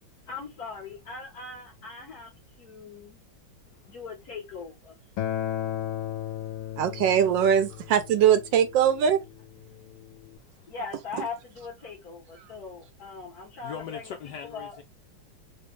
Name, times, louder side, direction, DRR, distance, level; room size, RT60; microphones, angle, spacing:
voice 1, 0.3-2.3 2.6-3.2 3.9-5.0 10.7-14.8, left 4 dB, 50° left, 1.8 m, -40 dB
Acoustic guitar, 5.2-10.4, left 11 dB, 85° left, 1.4 m, -35 dB
voice 2, 5.5-6.8 10.4-10.7 13.6-14.8, left 7 dB, 70° left, 1.0 m, -43 dB
voice 3, 6.8-9.2, right 8 dB, 75° right, 1.2 m, -21 dB
4.2 x 2.5 x 3.2 m
omnidirectional pair, 2.2 m